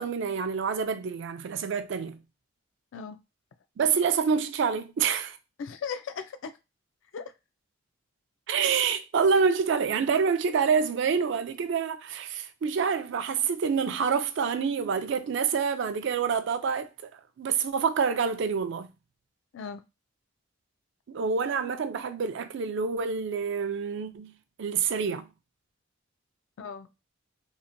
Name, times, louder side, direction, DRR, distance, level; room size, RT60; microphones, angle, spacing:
voice 1, 0.0-2.2 3.8-5.4 8.5-17.1 17.4-18.9 21.1-24.3 24.6-25.3, right 6 dB, 65° right, 0.4 m, -27 dB
voice 2, 5.6-6.6 7.1-7.3 19.5-19.8 26.6-26.9, left 6 dB, 70° left, 0.3 m, -37 dB
2.8 x 2.1 x 2.5 m
head